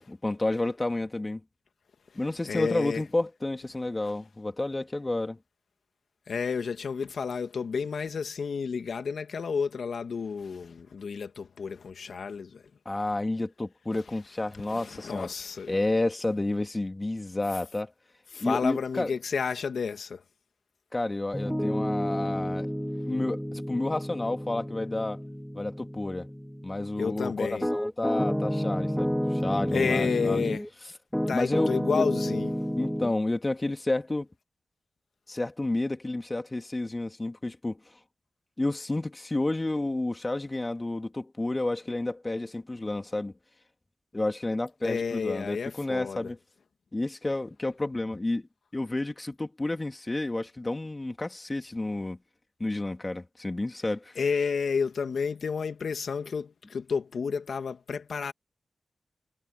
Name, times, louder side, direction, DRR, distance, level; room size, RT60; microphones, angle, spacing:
voice 1, 0.0-1.4 2.1-5.4 12.8-15.3 15.7-17.9 18.4-19.1 20.9-22.7 23.1-25.2 25.5-26.3 26.6-30.4 31.3-32.1 32.7-34.3 35.3-37.8 38.6-43.3 44.1-46.4 46.9-48.5 48.7-52.2 52.6-54.1, left 2 dB, 30° left, 3.2 m, -30 dB
voice 2, 2.4-3.0 6.3-12.6 14.7-15.8 18.3-20.2 27.0-27.7 29.7-30.6 31.3-32.6 44.8-46.3 54.2-58.3, left 5 dB, 75° left, 2.0 m, -31 dB
Piano, 21.3-30.7 31.1-33.1, equal, 5° left, 1.1 m, -31 dB
cardioid pair, 45°, 0 cm